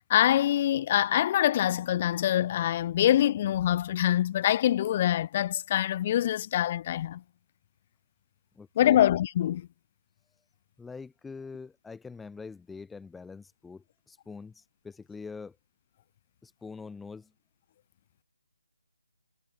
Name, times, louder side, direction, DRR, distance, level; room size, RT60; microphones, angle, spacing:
voice 1, 0.1-7.2 8.8-9.7, left 12 dB, 30° left, 1.0 m, -25 dB
voice 2, 8.6-9.0 10.8-15.6 16.4-17.3, left 4 dB, 5° left, 3.7 m, -44 dB
figure-of-eight pair, 155°, 0 cm